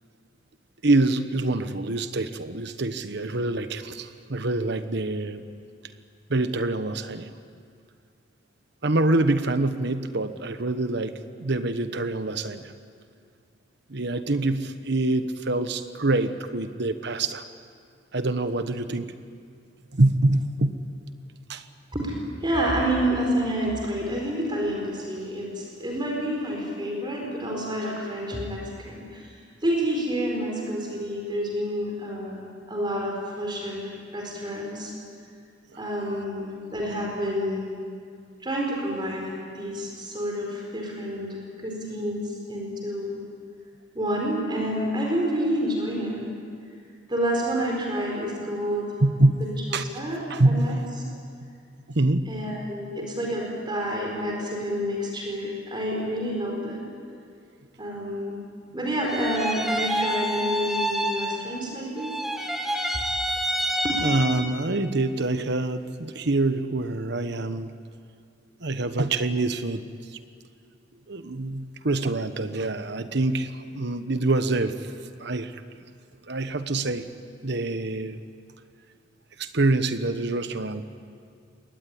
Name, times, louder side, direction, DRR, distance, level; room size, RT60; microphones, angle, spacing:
voice 1, 0.8-5.4 6.3-7.3 8.8-12.7 13.9-17.4 18.1-19.1 19.9-20.8 21.5-21.6 49.0-49.5 49.7-49.8 50.3-50.8 51.4-51.5 51.9-52.3 64.0-67.7 68.6-69.8 71.1-74.9 75.2-75.6 76.3-77.1 77.4-78.2 79.4-80.8, right 2 dB, 65° right, 10 dB, 1.2 m, -25 dB
voice 2, 22.4-34.9 35.8-37.7 38.4-43.2 43.9-46.3 47.1-48.9 49.4-50.7 52.3-56.8 57.8-58.4 58.7-62.1 63.8-64.0, equal, 25° right, -1 dB, 4.5 m, -29 dB
sound 1, 59.1-61.7 62.0-64.7, equal, ahead, 1.5 m, -28 dB
23.0 x 18.5 x 10.0 m, 2.2 s
head